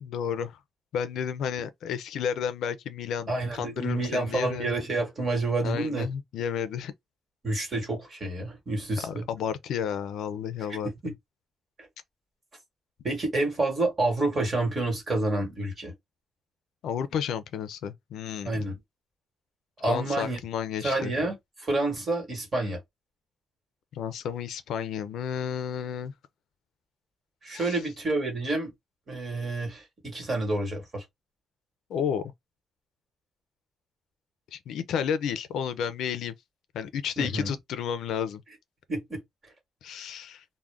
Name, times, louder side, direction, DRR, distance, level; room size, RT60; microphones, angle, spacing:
voice 1, 0.0-0.6 0.9-4.7 5.6-6.9 9.0-11.1 16.8-18.6 19.9-21.1 23.9-26.1 27.5-27.8 31.9-32.3 34.5-36.3 36.7-38.4 39.8-40.4, left 8 dB, 75° left, 0.4 m, -32 dB
voice 2, 3.3-6.1 7.4-9.3 10.8-11.1 11.8-11.9 13.0-15.9 18.4-18.8 19.8-20.4 20.8-22.8 27.4-28.7 29.1-31.0 37.2-37.5 38.9-39.2, right 2 dB, 25° right, 1.3 m, -29 dB
2.4 x 2.1 x 3.3 m
cardioid pair, 170°, 0 cm